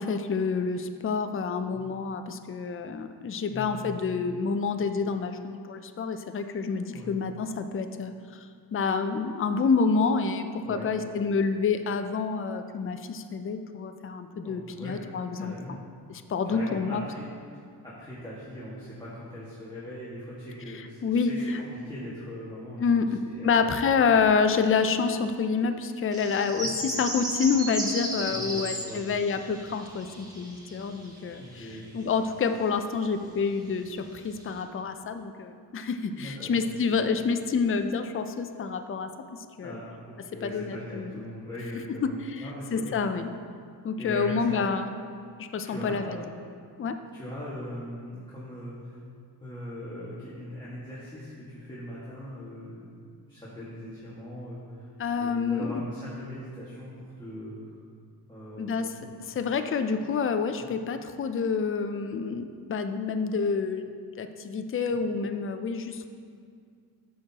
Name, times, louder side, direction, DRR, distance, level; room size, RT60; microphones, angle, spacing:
voice 1, 0.0-8.4 8.7-15.8 16.1-17.0 21.0-21.3 22.8-31.7 31.9-39.1 39.6-39.8 40.4-41.1 42.0-43.3 43.8-44.9 45.4-46.0 46.8-47.0 55.0-55.8 58.6-63.9 64.2-66.1, left 5 dB, 35° left, 8 dB, 0.4 m, -28 dB
voice 2, 3.5-3.9 6.9-7.1 10.6-10.9 14.4-15.0 15.4-15.8 16.4-17.3 17.8-23.7 26.6-26.7 28.3-29.0 31.4-31.9 36.2-36.6 36.9-37.1 39.6-43.0 44.0-44.6 45.6-46.3 47.1-49.0 49.4-52.8 53.3-54.9 55.2-57.6 58.3-59.1 60.6-60.7 64.9-65.0, equal, 10° left, -10 dB, 1.8 m, -40 dB
sound 1, 26.1-31.9 32.5-32.6 33.5-33.6 34.0-34.6, equal, 10° right, 1.4 m, -35 dB
12.5 x 6.1 x 2.9 m, 2.2 s
wide cardioid pair, 100°, 41 cm